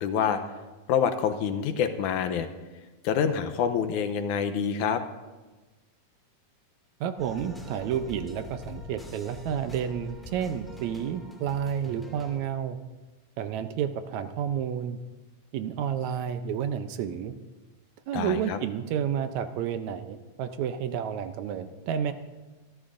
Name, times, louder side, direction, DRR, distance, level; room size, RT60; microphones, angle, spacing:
voice 1, 0.0-0.4 0.9-2.5 3.0-5.0 18.1-18.6, left 7 dB, 80° left, 9 dB, 2.1 m, -26 dB
voice 2, 7.0-12.8 13.4-15.0 15.5-17.3 18.1-22.1, right 8 dB, 75° right, 9 dB, 1.8 m, -30 dB
sound 1, 7.2-12.4, left 2 dB, ahead, 1.3 m, -44 dB
26.5 x 12.5 x 2.5 m, 1.2 s
omnidirectional pair, 3.6 m